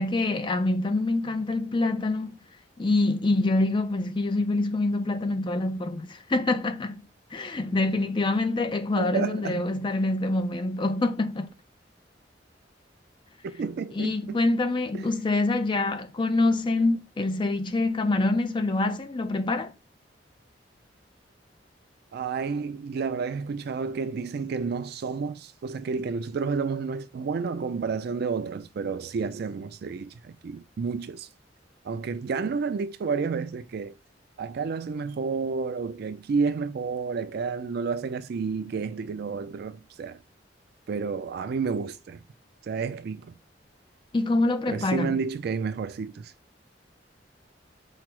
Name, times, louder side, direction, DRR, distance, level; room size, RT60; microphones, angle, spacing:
voice 1, 0.0-2.3 2.8-7.0 7.3-11.5 14.0-19.7 44.1-45.1, left 2 dB, 25° left, 0.4 m, -25 dB
voice 2, 9.0-9.8 13.4-14.4 14.9-15.1 22.1-31.3 31.8-33.9 34.4-40.2 40.9-42.2 42.6-43.3 44.7-46.3, right 5 dB, 60° right, 0.3 m, -30 dB
4.8 x 2.0 x 4.4 m
head